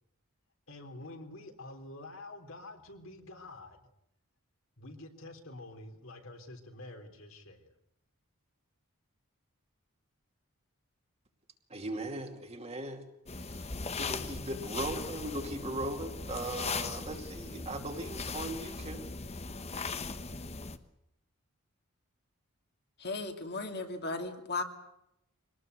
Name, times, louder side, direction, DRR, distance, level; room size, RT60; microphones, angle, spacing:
voice 1, 0.7-3.8 4.8-7.8, left 2 dB, 60° left, 5 dB, 3.6 m, -48 dB
voice 2, 11.7-13.1 13.4-13.7 14.0-19.1, right 1 dB, 30° right, 5 dB, 2.5 m, -38 dB
sound 1, 13.3-20.8, left 4 dB, 30° left, 1.2 m, -39 dB
voice 3, 23.0-24.6, left 3 dB, 45° left, 5 dB, 2.7 m, -36 dB
25.0 x 19.5 x 8.1 m, 0.80 s
head